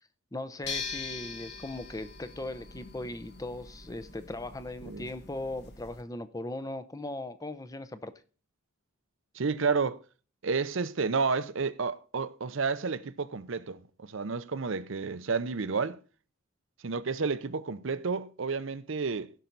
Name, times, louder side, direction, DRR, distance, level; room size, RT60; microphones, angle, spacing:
voice 1, 0.3-8.1, left 2 dB, 15° left, 0.6 m, -38 dB
sound 1, 0.6-6.0, left 5 dB, 50° left, 1.7 m, -42 dB
voice 2, 9.3-10.0 10.4-16.0 16.8-19.3, right 4 dB, 60° right, 0.6 m, -31 dB
16.0 x 5.7 x 3.9 m
head